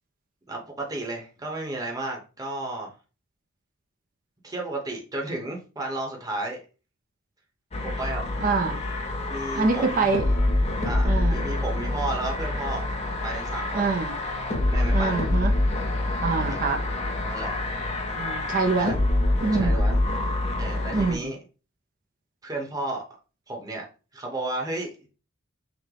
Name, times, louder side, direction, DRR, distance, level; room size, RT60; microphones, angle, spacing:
voice 1, 0.5-2.9 4.4-6.6 7.8-8.2 9.3-10.1 10.8-12.9 13.2-13.9 14.7-15.2 16.4-16.6 17.3-17.5 18.7-18.9 19.5-20.0 20.6-21.4 22.4-23.0 23.5-23.8 24.1-25.1, right 2 dB, 15° right, 0.8 m, -33 dB
sound 1, 7.7-21.1, left 2 dB, 30° left, 0.7 m, -26 dB
voice 2, 8.4-8.8 9.5-10.3 11.0-11.4 13.7-14.1 14.9-15.5 16.2-16.8 18.2-18.9 19.4-19.8 20.9-21.3, right 4 dB, 40° right, 0.4 m, -25 dB
5.9 x 2.1 x 3.3 m
head